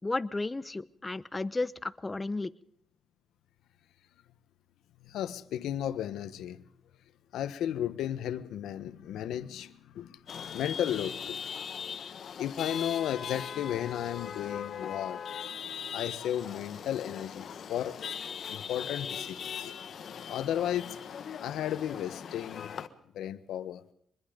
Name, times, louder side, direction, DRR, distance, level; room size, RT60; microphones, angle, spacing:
voice 1, 0.0-2.5, left 2 dB, 20° left, 1.0 m, -33 dB
voice 2, 5.0-6.6 7.3-11.4 12.4-15.2 15.9-18.0 18.5-19.7 20.3-21.0 21.4-22.7 23.1-23.8, left 10 dB, 90° left, 1.3 m, -34 dB
Chatter / Vehicle horn car horn honking / Traffic noise roadway noise, 10.3-22.9, left 7 dB, 60° left, 1.5 m, -40 dB
24.5 x 21.0 x 5.3 m
cardioid pair, 100°, 0 cm